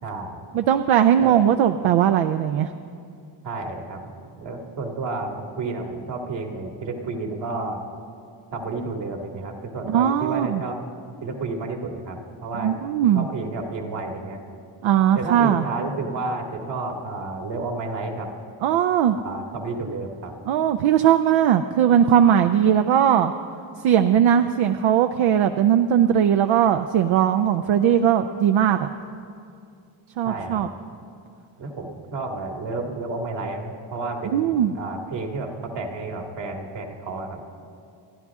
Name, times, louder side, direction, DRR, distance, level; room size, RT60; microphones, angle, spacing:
voice 1, 0.0-0.4 1.2-1.3 3.4-4.1 4.4-7.8 8.5-10.8 11.2-12.8 13.1-14.4 15.1-18.3 19.1-20.3 30.2-30.7 31.6-37.5, right 3 dB, 65° right, 2 dB, 2.2 m, -31 dB
voice 2, 0.5-2.7 9.9-10.6 12.6-13.3 14.8-15.6 18.6-19.2 20.5-23.3 23.8-28.9 30.2-30.7 34.3-34.7, right 9 dB, 85° right, 8 dB, 0.6 m, -19 dB
28.0 x 11.0 x 3.6 m, 2.4 s
cardioid pair, 100°, 46 cm